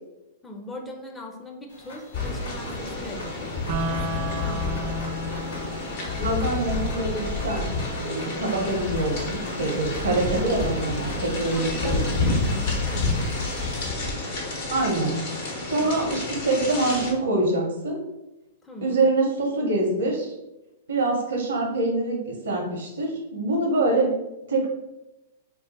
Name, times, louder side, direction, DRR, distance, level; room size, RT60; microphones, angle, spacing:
voice 1, 0.4-3.5 3.9-5.1 11.5-13.3 15.7-15.9 18.6-19.0, left 1 dB, 10° left, 1 dB, 0.5 m, -40 dB
sound 1, 1.7-13.9, left 1 dB, 80° left, 1.1 m, -45 dB
sound 2, 2.1-17.1, left 3 dB, 60° left, 1.0 m, -29 dB
sound 3, 3.7-13.7, equal, 45° right, 0.4 m, -37 dB
voice 2, 6.1-7.7 8.0-12.3 14.7-15.2 15.7-18.0 18.8-20.3 20.9-24.1 24.5-24.7, right 2 dB, 85° right, -1 dB, 0.6 m, -25 dB
2.3 x 2.3 x 3.9 m, 0.95 s
hypercardioid pair, 115°, 0 cm